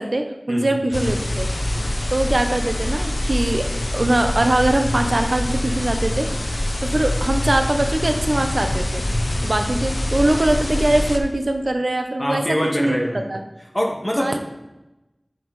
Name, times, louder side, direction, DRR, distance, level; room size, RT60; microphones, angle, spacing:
voice 1, 0.0-1.5 2.1-6.3 6.8-9.0 9.4-13.4 14.2-14.4, right 1 dB, 85° right, 5 dB, 0.7 m, -22 dB
sound 1, 0.9-11.2, left 1 dB, 80° left, 0.7 m, -24 dB
voice 2, 12.2-13.3 13.7-14.4, equal, 20° left, -1 dB, 1.7 m, -24 dB
9.0 x 6.0 x 3.2 m, 0.99 s
wide cardioid pair, 45°, 0 cm